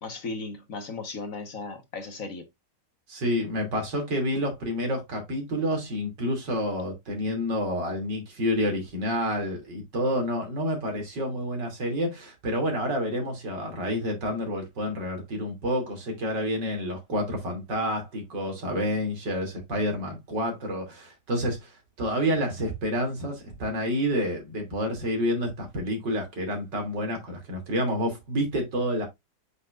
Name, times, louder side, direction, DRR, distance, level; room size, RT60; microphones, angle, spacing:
voice 1, 0.0-2.5, left 3 dB, 50° left, 1.6 m, -36 dB
voice 2, 3.1-29.1, equal, 80° right, 3.4 m, -29 dB
8.2 x 6.0 x 2.5 m
omnidirectional pair, 1.9 m